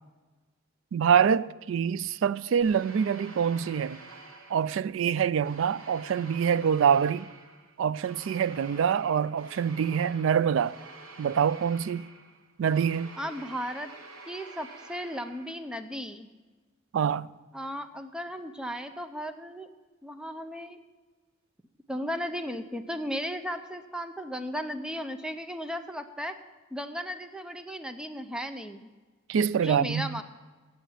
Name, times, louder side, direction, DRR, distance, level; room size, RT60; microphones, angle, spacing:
voice 1, 0.9-4.0 4.5-7.3 7.8-10.8 11.2-12.1 12.6-13.1 16.9-17.3 29.3-30.2, right 7 dB, 60° right, 0.3 m, -25 dB
sound 1, 2.6-5.0 5.4-15.8, right 3 dB, 80° right, 1.2 m, -48 dB
voice 2, 13.2-13.9 14.3-16.3 17.5-19.7 20.0-20.8 21.9-26.3 26.7-28.9 29.6-30.2, equal, 5° right, 0.5 m, -35 dB
8.6 x 8.1 x 8.9 m
head